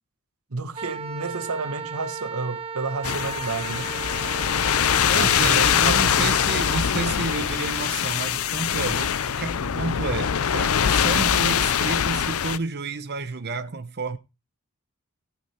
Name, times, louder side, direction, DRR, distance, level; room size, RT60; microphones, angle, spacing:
voice 1, 0.5-4.0 5.1-6.3, right 3 dB, 75° right, 1.1 m, -31 dB
Wind instrument woodwind instrument, 0.7-6.8, right 6 dB, 25° right, 0.7 m, -35 dB
sound 1, 3.0-12.6, left 8 dB, 75° left, 0.6 m, -23 dB
voice 2, 5.1-14.2, right 3 dB, 50° right, 0.9 m, -30 dB
15.5 x 5.9 x 4.5 m
head